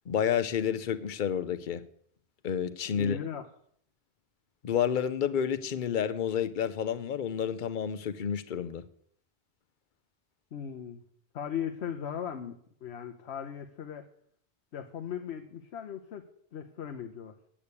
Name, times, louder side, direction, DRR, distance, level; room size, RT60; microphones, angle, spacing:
voice 1, 0.1-1.8 2.4-3.2 4.6-8.8, left 8 dB, 55° left, 0.8 m, -30 dB
voice 2, 2.9-3.4 10.5-11.0 11.3-14.1 14.7-16.2 16.5-17.4, left 8 dB, 90° left, 1.1 m, -38 dB
8.7 x 8.6 x 8.3 m
omnidirectional pair, 1.1 m